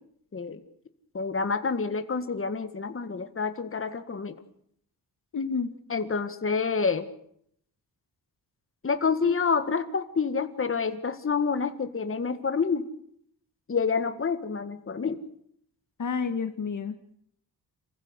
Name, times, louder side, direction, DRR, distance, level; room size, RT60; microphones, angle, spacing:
voice 1, 1.1-4.3 5.9-7.1 8.8-12.9 13.7-15.2, left 5 dB, 35° left, 8 dB, 1.9 m, -28 dB
voice 2, 5.3-5.7 16.0-17.2, left 5 dB, 50° left, 8 dB, 1.7 m, -30 dB
27.5 x 15.5 x 8.2 m, 0.68 s
wide cardioid pair, 130°, 38 cm